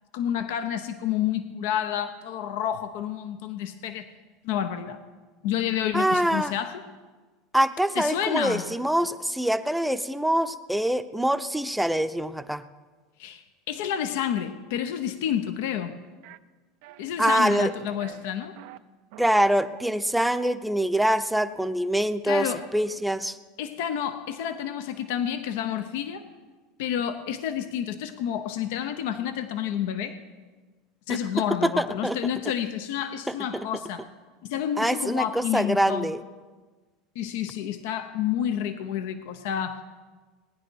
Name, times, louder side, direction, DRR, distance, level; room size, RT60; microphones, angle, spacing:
voice 1, 0.1-4.1 4.4-5.0 5.4-6.8 8.0-8.6 13.2-15.9 17.0-18.6 22.2-22.6 23.6-26.2 26.8-30.2 31.1-34.0 34.4-36.1 37.1-39.8, left 9 dB, 75° left, 9 dB, 0.8 m, -29 dB
voice 2, 5.9-6.5 7.5-12.6 17.2-17.7 19.2-23.4 31.1-31.2 31.6-32.2 33.3-33.7 34.8-36.2, right 1 dB, 5° right, 10 dB, 0.6 m, -24 dB
sound 1, 16.2-16.4 16.8-17.1 17.4-17.7 18.0-18.8 19.1-19.5, right 16 dB, 70° right, 0.5 m, -45 dB
18.5 x 9.9 x 4.6 m, 1.4 s
hypercardioid pair, 100°, 0 cm